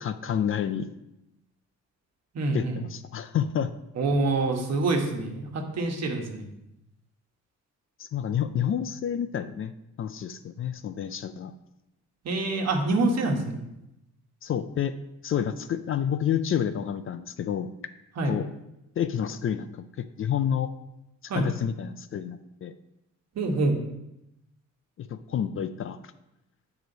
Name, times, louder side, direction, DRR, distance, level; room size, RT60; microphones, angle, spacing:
voice 1, 0.0-0.9 2.5-3.7 8.0-9.7 10.0-11.5 14.4-14.9 15.2-17.7 18.2-18.5 19.0-20.7 21.2-22.7 25.0-26.0, left 9 dB, 45° left, 11 dB, 0.4 m, -29 dB
voice 2, 2.3-2.8 4.0-6.5 12.2-13.6 18.2-18.4 21.3-21.5 23.3-23.8, right 2 dB, 60° right, 2 dB, 1.3 m, -26 dB
7.9 x 4.9 x 3.9 m, 0.89 s
cardioid pair, 90°, 30 cm